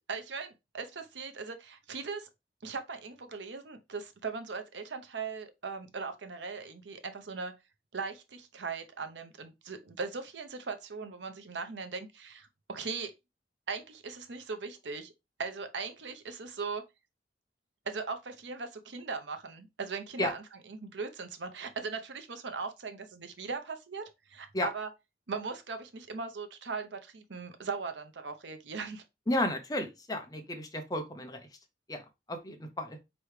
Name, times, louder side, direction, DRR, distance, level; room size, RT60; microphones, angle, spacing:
voice 1, 0.0-2.3 2.6-7.5 7.9-13.1 13.7-15.1 15.4-16.8 17.9-24.9 25.3-29.0, right 4 dB, 90° right, 0.7 m, -39 dB
voice 2, 29.3-31.4 31.9-32.0 32.3-33.0, left 1 dB, 20° left, 0.7 m, -32 dB
4.6 x 3.0 x 3.2 m
head